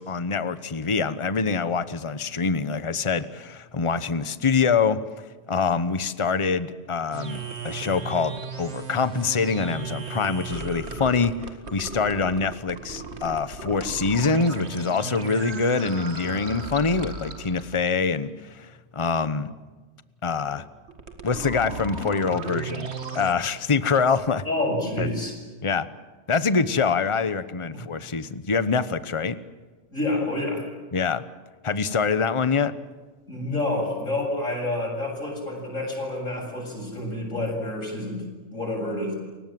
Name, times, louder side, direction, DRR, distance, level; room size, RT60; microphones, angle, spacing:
voice 1, 0.0-5.0 5.5-7.4 7.6-11.3 11.7-19.5 20.2-20.6 21.2-24.4 25.0-25.1 25.6-25.9 26.3-29.4 30.9-31.2 31.6-32.7, left 5 dB, 25° left, 13 dB, 1.0 m, -25 dB
sound 1, 7.1-17.9 20.9-23.3, right 4 dB, 55° right, 2.3 m, -35 dB
voice 2, 24.4-25.3 27.7-27.8 29.9-30.7 33.3-39.1, left 1 dB, 85° left, -1 dB, 7.9 m, -28 dB
30.0 x 23.5 x 7.7 m, 1.3 s
omnidirectional pair, 1.3 m